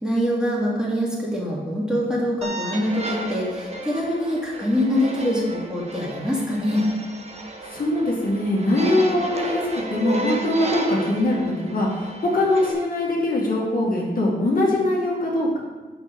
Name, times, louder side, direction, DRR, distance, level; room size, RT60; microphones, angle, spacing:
voice 1, 0.0-6.8, equal, 5° right, -5 dB, 2.3 m, -24 dB
sound 1, 2.4-12.7, right 1 dB, 35° right, 1.1 m, -33 dB
voice 2, 7.7-9.6 9.9-15.6, left 1 dB, 55° left, -3 dB, 1.9 m, -22 dB
6.5 x 6.2 x 5.2 m, 1.3 s
wide cardioid pair, 90°, 18 cm